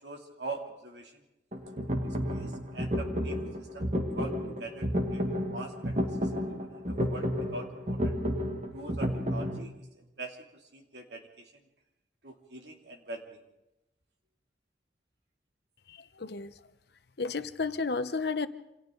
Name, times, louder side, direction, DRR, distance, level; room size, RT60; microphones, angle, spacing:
voice 1, 0.0-1.2 2.2-3.9 4.1-5.2 5.5-5.9 6.2-8.1 8.7-9.9 10.2-11.7 12.2-13.4, right 2 dB, 70° right, 2 dB, 3.0 m, -43 dB
sound 1, 1.5-9.6, equal, 40° right, 2.1 m, -32 dB
voice 2, 15.9-16.6 17.2-18.5, left 4 dB, 65° left, 12 dB, 0.9 m, -32 dB
28.5 x 26.5 x 3.9 m, 0.93 s
head